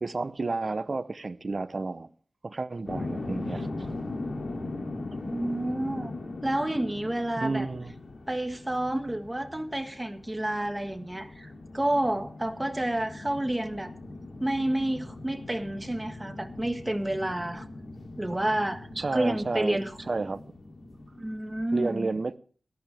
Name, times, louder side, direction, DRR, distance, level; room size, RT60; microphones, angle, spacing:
voice 1, 0.0-2.1 2.4-3.9 7.4-7.9 19.0-19.8 20.1-20.4 21.7-22.4, right 3 dB, 50° right, 0.7 m, -31 dB
sound 1, 2.9-21.8, left 2 dB, 65° left, 2.6 m, -40 dB
voice 2, 5.3-6.1 6.4-7.6 8.3-13.9 14.4-17.7 18.2-18.9 19.1-19.9 21.2-22.1, right 1 dB, 15° right, 1.6 m, -29 dB
18.0 x 13.0 x 3.4 m
wide cardioid pair, 90°, 0 cm